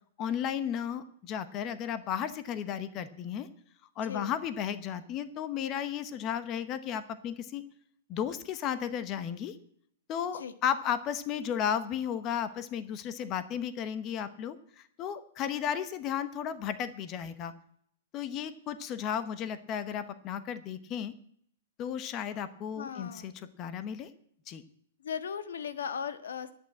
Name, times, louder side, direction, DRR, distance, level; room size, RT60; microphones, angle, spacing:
voice 1, 0.2-3.5 4.0-7.6 8.1-9.6 10.1-17.5 18.1-21.1 21.8-23.3 23.6-24.1 24.5-24.6, left 9 dB, 25° left, 13 dB, 0.8 m, -34 dB
voice 2, 4.0-4.3 10.3-10.5 22.7-23.3 25.0-26.5, left 7 dB, 90° left, 11 dB, 1.4 m, -37 dB
11.0 x 8.9 x 8.3 m, 0.65 s
hypercardioid pair, 160°, 0 cm